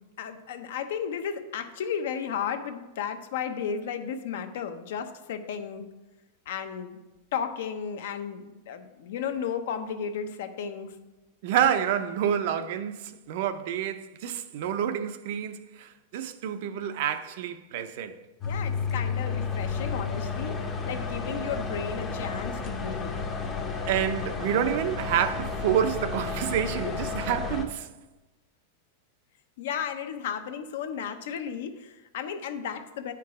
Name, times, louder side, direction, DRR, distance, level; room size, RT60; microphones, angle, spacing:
voice 1, 0.2-5.9 6.5-7.0 7.3-10.9 18.4-23.1 26.8-26.9 29.6-33.1, left 7 dB, 60° left, 0.7 m, -34 dB
voice 2, 11.4-18.1 23.9-27.9, right 9 dB, 50° right, 0.5 m, -28 dB
sound 1, 18.4-27.7, left 4 dB, 15° left, 0.6 m, -32 dB
9.4 x 4.6 x 4.8 m
supercardioid pair, 170°, 0 cm